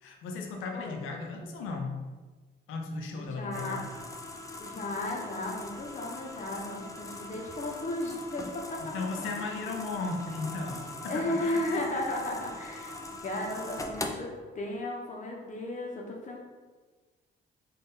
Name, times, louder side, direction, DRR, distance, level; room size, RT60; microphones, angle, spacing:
voice 1, 0.0-2.0 2.7-3.9 8.8-11.8, left 3 dB, 90° left, 2 dB, 0.7 m, -36 dB
voice 2, 3.3-3.8 4.6-8.9 9.4-9.6 11.0-14.3 14.5-16.4, left 1 dB, 40° left, 0 dB, 1.0 m, -34 dB
sound 1, 3.5-14.1, left 2 dB, 15° left, 0.5 m, -42 dB
4.0 x 2.6 x 3.9 m, 1.3 s
cardioid pair, 90°, 20 cm